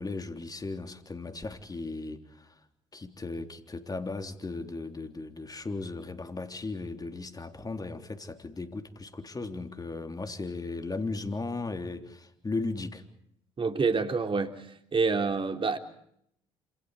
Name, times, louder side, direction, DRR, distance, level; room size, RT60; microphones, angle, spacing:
voice 1, 0.0-2.6 2.9-13.0, left 3 dB, 25° left, 3.6 m, -36 dB
voice 2, 13.6-14.7 14.9-15.8, right 4 dB, 35° right, 3.3 m, -27 dB
27.5 x 27.0 x 5.0 m
hypercardioid pair, 55°, 15 cm